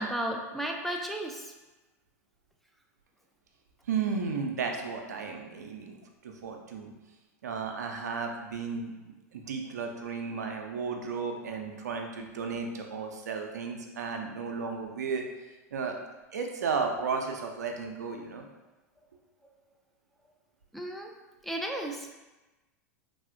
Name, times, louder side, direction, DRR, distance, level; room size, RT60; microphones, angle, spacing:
voice 1, 0.0-1.5 20.7-21.1 21.4-22.1, right 1 dB, ahead, 1 dB, 0.3 m, -34 dB
voice 2, 3.9-6.0 6.2-6.9 7.4-15.2 15.7-16.0 16.3-18.4, right 5 dB, 85° right, 3 dB, 0.4 m, -34 dB
3.3 x 2.0 x 2.5 m, 1.1 s
hypercardioid pair, 95°, 9 cm